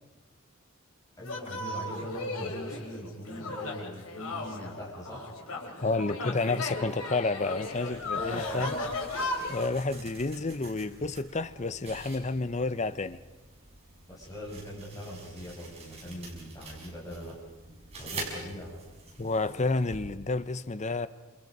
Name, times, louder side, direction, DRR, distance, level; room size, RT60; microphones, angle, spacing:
sound 1, 1.2-9.7, left 2 dB, 85° left, 4.2 m, -36 dB
voice 1, 1.2-5.3 8.1-8.8 14.1-17.4 18.0-18.7, equal, 15° left, 7.0 m, -41 dB
voice 2, 5.8-8.8 9.5-13.2 19.2-21.1, left 3 dB, 35° left, 0.7 m, -30 dB
sound 2, 7.6-20.0, right 2 dB, 30° right, 6.2 m, -46 dB
29.0 x 27.5 x 5.4 m
head